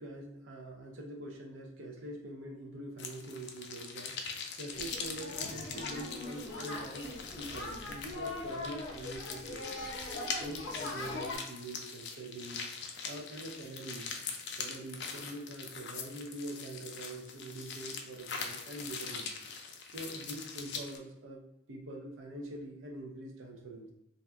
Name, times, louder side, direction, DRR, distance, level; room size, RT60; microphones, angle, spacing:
voice 1, 0.0-4.2 4.5-9.9 10.4-12.7 13.0-14.2 14.6-19.4 19.9-23.9, right 1 dB, 85° right, 1 dB, 0.6 m, -44 dB
sound 1, 3.0-21.0, left 5 dB, 60° left, 0.4 m, -42 dB
sound 2, 4.7-11.3, left 2 dB, 80° left, 0.7 m, -41 dB
2.7 x 2.3 x 3.4 m, 0.85 s
head